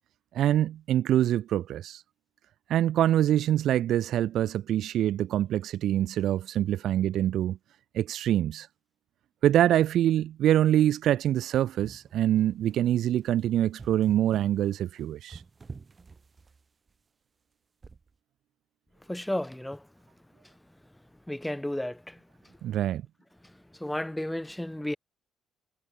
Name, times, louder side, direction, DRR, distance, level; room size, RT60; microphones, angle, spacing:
voice 1, 0.3-2.0 2.7-7.6 7.9-8.7 9.4-15.4 22.6-23.0, right 12 dB, 65° right, 0.5 m, -25 dB
sound 1, 11.6-16.9 17.8-18.1, right 4 dB, 25° right, 2.2 m, -49 dB
voice 2, 19.1-19.9 20.4-20.5 21.3-22.2 23.4-25.0, left 1 dB, 5° left, 1.5 m, -33 dB
cardioid pair, 110°, 0 cm